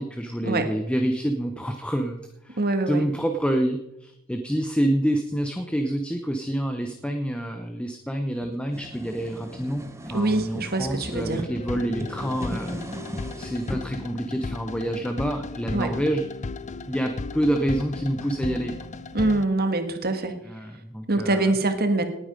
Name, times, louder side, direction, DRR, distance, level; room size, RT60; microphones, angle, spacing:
voice 1, 0.0-2.6 2.9-12.8 13.4-16.2 16.9-18.7 20.5-21.5, right 1 dB, 5° left, 5 dB, 0.9 m, -27 dB
voice 2, 2.6-3.0 10.1-11.4 15.7-15.9 19.1-20.4 21.1-22.0, right 2 dB, 45° right, 7 dB, 1.6 m, -24 dB
sound 1, 8.4-11.5 11.9-13.8, equal, 15° right, 1.2 m, -37 dB
sound 2, 11.2-19.5, left 3 dB, 35° left, 0.5 m, -35 dB
19.0 x 8.8 x 5.2 m, 0.85 s
head